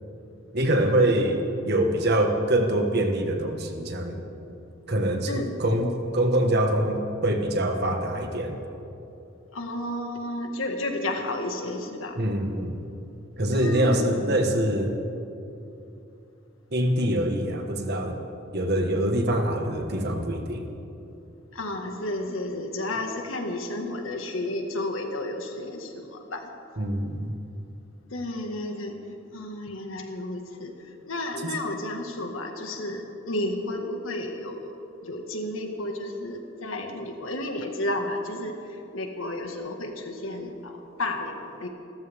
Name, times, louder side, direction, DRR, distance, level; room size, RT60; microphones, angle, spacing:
voice 1, 0.5-1.4 1.6-4.2 4.9-8.6 12.1-12.8 13.4-14.9 16.7-18.2 18.5-20.7 26.8-27.3, right 1 dB, 55° right, 4 dB, 1.6 m, -24 dB
voice 2, 9.5-12.2 13.5-14.1 21.5-26.5 28.1-29.0 29.3-30.7 31.1-34.7 35.0-41.7, left 1 dB, 80° left, 3 dB, 1.9 m, -32 dB
28.0 x 14.0 x 3.7 m, 2.8 s
head